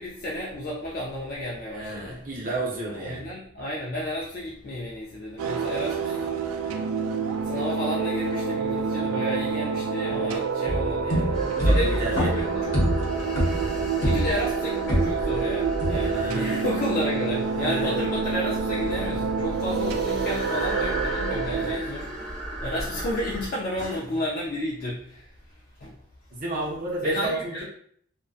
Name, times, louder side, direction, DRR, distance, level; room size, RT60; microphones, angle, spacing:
voice 1, 0.0-2.2 2.8-6.3 7.4-12.8 14.0-22.3 22.6-25.9 27.0-27.6, equal, 40° left, -5 dB, 0.3 m, -32 dB
voice 2, 1.7-3.3 6.0-6.1 9.0-9.2 11.5-12.5 13.7-13.8 16.1-16.6 17.5-18.0 19.4-19.8 20.5-20.6 21.5-21.7 26.3-27.6, right 1 dB, 40° right, -3 dB, 0.7 m, -32 dB
sound 1, 5.4-21.8, right 5 dB, 85° right, 0.3 m, -28 dB
sound 2, 10.7-15.4 15.8-16.4, equal, 65° left, 0.9 m, -26 dB
sound 3, 11.3-23.5, equal, 5° left, 1.0 m, -35 dB
2.5 x 2.1 x 2.3 m, 0.63 s
head